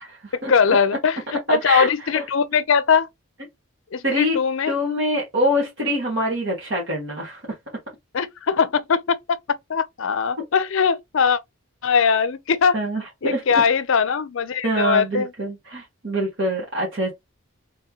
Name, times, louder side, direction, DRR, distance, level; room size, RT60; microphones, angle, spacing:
voice 1, 0.3-3.1 3.9-4.7 8.1-9.4 9.7-11.4 11.8-12.8 13.2-15.3, left 6 dB, 65° left, 0.5 m, -21 dB
voice 2, 1.5-1.9 2.1-2.2 4.0-4.4 4.7-7.6 12.7-13.4 14.6-17.1, equal, 55° right, 1.5 m, -24 dB
3.6 x 3.3 x 2.9 m
head